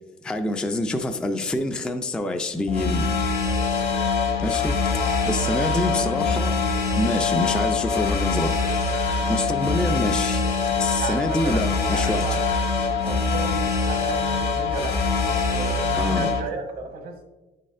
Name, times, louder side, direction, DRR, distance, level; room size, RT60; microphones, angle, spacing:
voice 1, 0.2-3.1 4.4-4.8 5.3-8.6 8.9-10.5 10.8-12.2 16.0-16.3, left 1 dB, 5° left, 0.3 m, -27 dB
sound 1, 2.7-16.4, left 4 dB, 70° left, 1.5 m, -24 dB
voice 2, 5.0-5.8 10.9-12.4 13.0-17.2, right 4 dB, 80° right, 1.4 m, -34 dB
9.7 x 4.1 x 2.5 m
cardioid pair, 110°, 17 cm